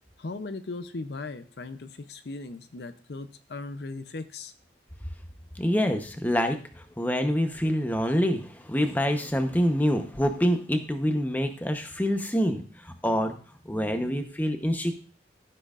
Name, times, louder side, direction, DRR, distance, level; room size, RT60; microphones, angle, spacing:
voice 1, 0.2-4.5, left 3 dB, 60° left, 10 dB, 0.6 m, -38 dB
voice 2, 5.5-13.3 13.6-15.0, equal, 10° left, 5 dB, 0.8 m, -26 dB
14.0 x 7.7 x 2.5 m, 0.41 s
head